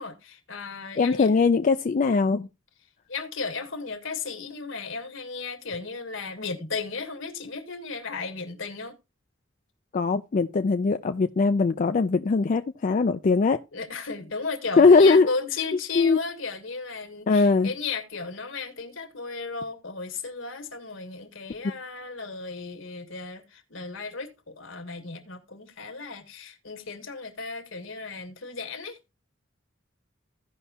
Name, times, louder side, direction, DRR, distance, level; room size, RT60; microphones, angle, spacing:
voice 1, 0.0-1.3 3.1-8.9 13.7-29.0, left 4 dB, 75° left, 1.6 m, -35 dB
voice 2, 1.0-2.5 9.9-13.6 14.8-15.3 15.9-16.2 17.3-17.7, left 4 dB, 40° left, 0.4 m, -20 dB
15.5 x 5.6 x 2.8 m
head